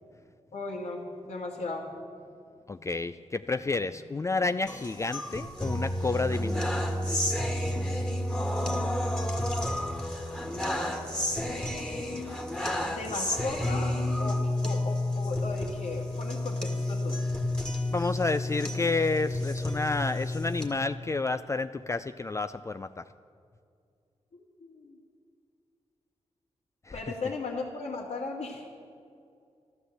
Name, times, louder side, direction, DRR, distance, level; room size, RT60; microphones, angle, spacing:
voice 1, 0.5-1.9 12.8-17.3 24.3-25.0 26.9-28.6, left 3 dB, 75° left, -5 dB, 2.2 m, -37 dB
voice 2, 2.7-6.8 17.9-23.1 26.8-27.0, left 3 dB, 25° left, 10 dB, 0.4 m, -30 dB
sound 1, 4.7-20.7, left 1 dB, 5° left, 1.7 m, -30 dB
13.0 x 13.0 x 7.9 m, 2.4 s
cardioid pair, 90°, 12 cm